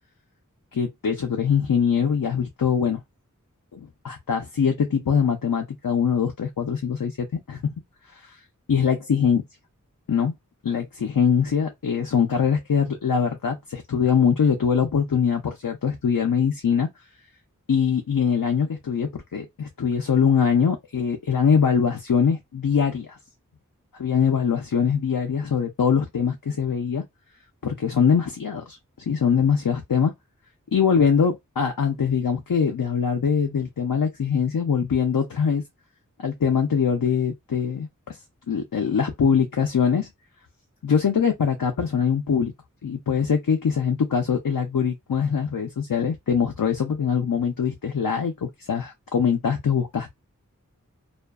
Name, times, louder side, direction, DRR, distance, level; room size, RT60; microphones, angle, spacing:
voice 1, 0.7-3.0 3.7-7.7 8.1-8.4 8.7-9.4 10.1-10.3 10.6-16.9 17.7-23.2 24.0-27.0 27.6-28.8 29.1-30.1 30.7-35.6 36.2-38.2 38.5-40.1 40.8-42.5 42.8-50.1, left 7 dB, 85° left, 0.6 m, -23 dB
2.4 x 2.2 x 2.3 m
wide cardioid pair, 45°, 33 cm